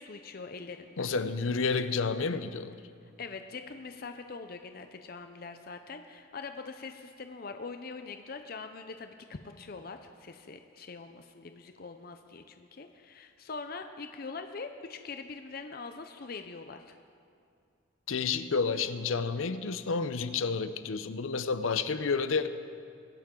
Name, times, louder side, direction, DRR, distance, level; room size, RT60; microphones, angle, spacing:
voice 1, 0.0-1.1 3.2-17.0, left 4 dB, 50° left, 7 dB, 0.6 m, -43 dB
voice 2, 1.0-2.7 18.1-22.5, left 4 dB, 85° left, 12 dB, 0.6 m, -30 dB
22.5 x 10.5 x 3.8 m, 2.3 s
head